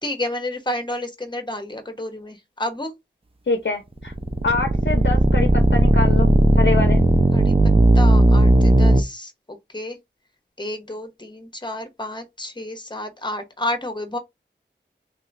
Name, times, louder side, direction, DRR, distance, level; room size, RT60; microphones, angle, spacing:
voice 1, 0.0-2.9 7.3-10.0 10.6-14.2, left 1 dB, 25° left, 0.9 m, -30 dB
voice 2, 3.5-4.1 4.4-7.0, left 3 dB, 70° left, 0.6 m, -25 dB
sound 1, 4.0-9.0, right 2 dB, 30° right, 0.5 m, -16 dB
3.3 x 2.8 x 2.5 m
wide cardioid pair, 45°, 20 cm